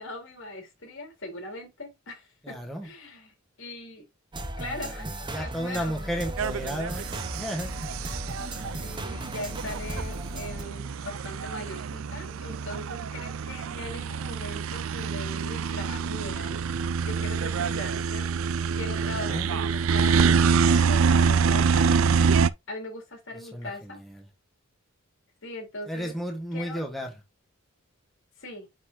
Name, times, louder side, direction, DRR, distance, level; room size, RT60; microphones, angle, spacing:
voice 1, 0.0-2.6 2.8-4.0 4.6-5.9 8.8-16.6 17.0-18.3 18.7-22.0 22.7-24.0 25.4-26.1 26.5-26.8 28.4-28.7, left 1 dB, 65° left, 4.0 m, -40 dB
voice 2, 2.4-2.9 5.3-7.1 7.3-7.7 19.0-19.5 23.5-24.2 25.9-27.1, equal, ahead, 1.5 m, -33 dB
sound 1, 4.3-10.6, right 1 dB, 25° right, 1.1 m, -36 dB
sound 2, 6.4-22.5, right 6 dB, 70° right, 0.5 m, -26 dB
9.7 x 4.2 x 2.8 m
head